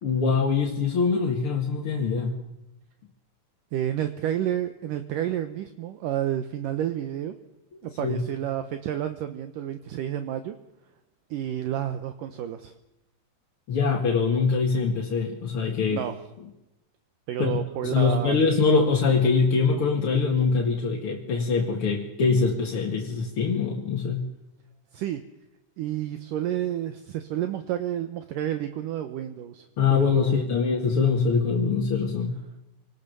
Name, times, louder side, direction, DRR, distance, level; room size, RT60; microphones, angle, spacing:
voice 1, 0.0-2.4 8.0-8.2 13.7-16.0 17.4-17.6 17.8-24.3 29.8-32.4, left 5 dB, 45° left, 0 dB, 2.2 m, -23 dB
voice 2, 3.7-7.4 7.8-10.6 11.3-12.7 15.9-16.2 17.3-18.4 24.9-25.2 25.8-30.5, right 11 dB, 70° right, 8 dB, 2.2 m, -30 dB
25.5 x 19.5 x 6.9 m, 0.94 s
omnidirectional pair, 4.7 m